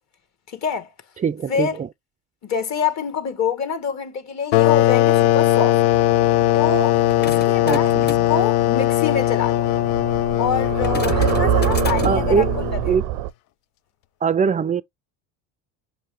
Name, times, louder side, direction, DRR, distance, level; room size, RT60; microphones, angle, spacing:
voice 1, 0.5-0.9 1.5-1.8 2.4-5.8 6.5-7.9 8.3-9.7 10.4-13.0, left 6 dB, 45° left, 1.1 m, -26 dB
voice 2, 1.2-1.9 7.6-8.1 12.0-12.6 12.9-13.1 14.2-14.8, right 6 dB, 20° right, 0.3 m, -22 dB
sound 1, 4.5-12.9, left 15 dB, 70° left, 0.5 m, -19 dB
sound 2, 5.9-13.3, right 15 dB, 75° right, 0.6 m, -26 dB
sound 3, 6.9-12.4, left 4 dB, 25° left, 0.9 m, -36 dB
5.9 x 2.8 x 3.2 m
supercardioid pair, 95°, 39 cm